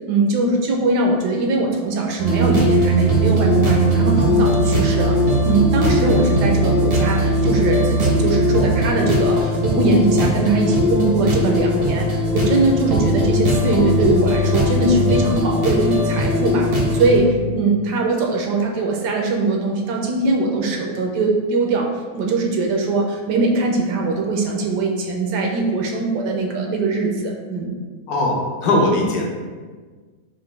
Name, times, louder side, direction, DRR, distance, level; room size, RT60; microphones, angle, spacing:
voice 1, 0.1-5.1 5.4-16.7 16.9-21.9 22.1-27.7, right 3 dB, 75° right, 1 dB, 1.2 m, -21 dB
sound 1, 2.2-17.2, equal, 55° right, 0.7 m, -19 dB
voice 2, 28.1-29.2, left 1 dB, 65° left, 0 dB, 1.2 m, -19 dB
5.0 x 2.5 x 3.3 m, 1.4 s
omnidirectional pair, 1.9 m